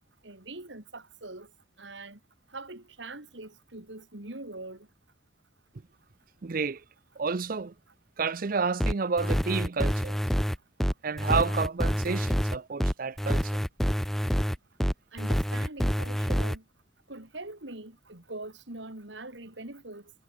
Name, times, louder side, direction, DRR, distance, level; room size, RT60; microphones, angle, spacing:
voice 1, 0.2-1.5 1.8-2.2 2.5-4.9 15.1-16.6 17.1-20.1, right 2 dB, 70° right, 3.2 m, -43 dB
voice 2, 6.4-6.8 7.2-7.7 8.2-10.2 11.0-13.5, right 5 dB, 45° right, 0.6 m, -30 dB
sound 1, 8.8-16.6, equal, ahead, 0.5 m, -27 dB
head